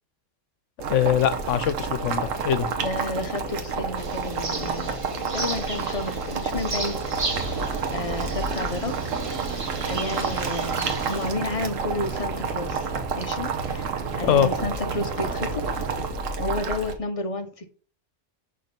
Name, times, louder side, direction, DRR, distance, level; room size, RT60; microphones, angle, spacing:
Boiling, 0.8-16.9, right 4 dB, 80° right, 1.3 m, -30 dB
voice 1, 0.9-2.7 14.2-14.5, left 9 dB, 75° left, 1.0 m, -22 dB
voice 2, 2.8-5.0 5.3-7.6 7.9-9.1 9.5-9.6 9.9-13.9 14.2-15.8 16.4-17.7, left 2 dB, 35° left, 0.6 m, -32 dB
sound 1, 4.0-11.3, right 3 dB, 30° right, 0.9 m, -35 dB
sound 2, 7.3-16.1, right 7 dB, 60° right, 1.0 m, -36 dB
6.1 x 3.7 x 5.1 m
omnidirectional pair, 1.3 m